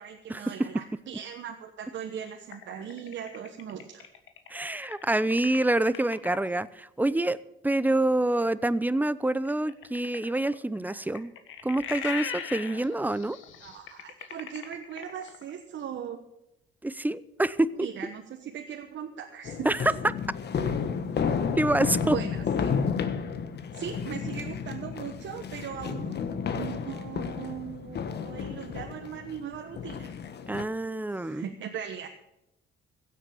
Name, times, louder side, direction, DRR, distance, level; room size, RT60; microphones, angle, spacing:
voice 1, 0.0-4.1 13.6-16.2 17.8-19.7 20.6-20.7 22.0-22.7 23.7-26.1 26.5-30.1 31.1-32.1, right 8 dB, 70° right, 4 dB, 1.2 m, -39 dB
sound 1, 2.5-6.6 9.4-15.5, left 8 dB, 80° left, 1.6 m, -40 dB
voice 2, 4.5-7.4 7.6-11.3 11.6-13.4 16.8-17.9 19.6-19.9 21.6-22.2 30.5-31.5, right 1 dB, 10° right, 17 dB, 0.6 m, -26 dB
sound 2, 19.4-30.6, left 6 dB, 55° left, 1.3 m, -32 dB
16.0 x 8.3 x 7.1 m, 0.87 s
cardioid pair, 90°, 20 cm